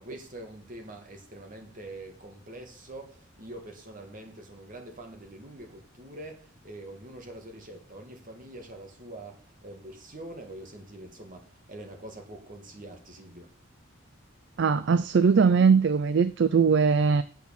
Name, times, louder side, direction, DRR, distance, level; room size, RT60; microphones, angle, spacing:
voice 1, 0.0-13.6, right 1 dB, 40° right, 2.2 m, -44 dB
voice 2, 14.6-17.2, right 5 dB, 55° right, 0.4 m, -21 dB
8.2 x 5.9 x 7.2 m
head